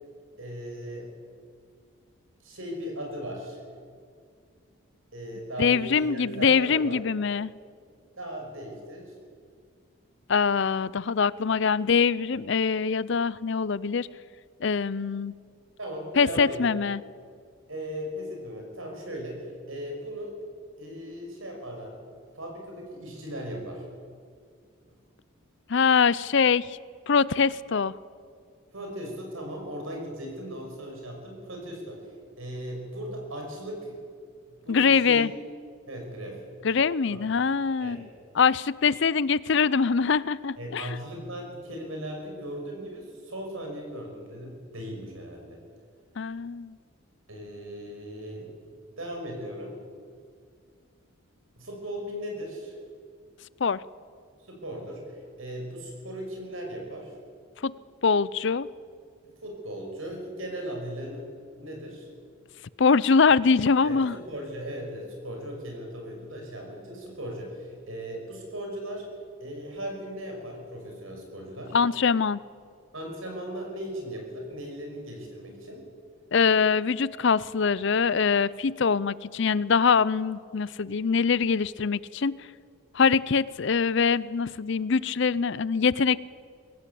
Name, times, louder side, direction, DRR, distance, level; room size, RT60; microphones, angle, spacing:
voice 1, 0.4-1.1 2.4-3.6 5.1-7.0 8.2-9.1 15.8-16.7 17.7-19.4 19.7-20.3 20.8-22.0 22.3-23.8 28.7-32.0 32.4-34.0 34.6-35.3 35.9-36.4 37.1-37.2 37.8-38.0 40.6-45.6 47.3-48.5 49.0-49.7 51.6-52.7 54.5-55.0 55.4-57.1 59.2-61.3 61.6-62.1 63.8-69.1 69.4-71.8 72.9-75.8, equal, 75° right, 2 dB, 6.2 m, -37 dB
voice 2, 5.6-7.5 10.3-14.1 14.6-15.3 16.2-17.0 25.7-26.8 27.1-27.9 34.7-35.3 36.6-38.1 38.3-41.0 46.2-46.8 53.6-53.8 57.6-57.7 58.0-58.7 62.8-64.2 71.7-72.4 76.3-82.4 82.9-86.2, left 5 dB, 55° left, 19 dB, 0.5 m, -23 dB
23.0 x 17.0 x 8.5 m, 2.1 s
head